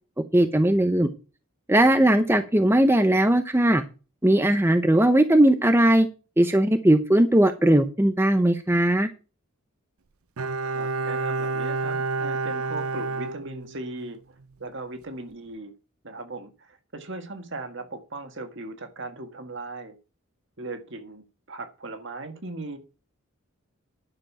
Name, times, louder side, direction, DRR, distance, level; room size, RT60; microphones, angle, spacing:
voice 1, 0.3-1.1 1.7-3.8 4.2-6.1 6.4-9.1, right 1 dB, 10° right, 0.7 m, -19 dB
Bowed string instrument, 10.4-14.1 14.4-14.5, right 3 dB, 80° right, 0.7 m, -29 dB
voice 2, 10.7-14.2 14.6-15.7 16.0-20.0 20.6-22.8, right 2 dB, 55° right, 1.8 m, -38 dB
11.0 x 6.7 x 5.7 m
head